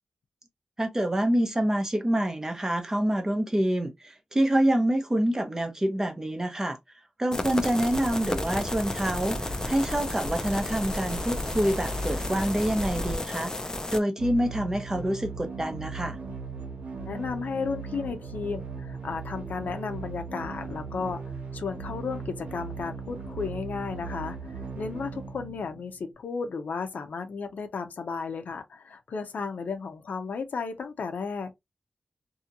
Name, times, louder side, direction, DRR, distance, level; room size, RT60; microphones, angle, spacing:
voice 1, 0.8-6.8 7.2-16.2, right 1 dB, 20° right, 0.7 m, -27 dB
sound 1, 7.3-14.0, left 2 dB, 25° left, 0.5 m, -33 dB
sound 2, 7.9-13.2, left 1 dB, 45° right, 1.0 m, -36 dB
sound 3, 14.2-26.1, right 4 dB, 80° right, 1.1 m, -38 dB
voice 2, 17.0-21.2 21.5-31.5, left 5 dB, 85° left, 0.6 m, -34 dB
2.8 x 2.7 x 2.5 m
wide cardioid pair, 110°, 3 cm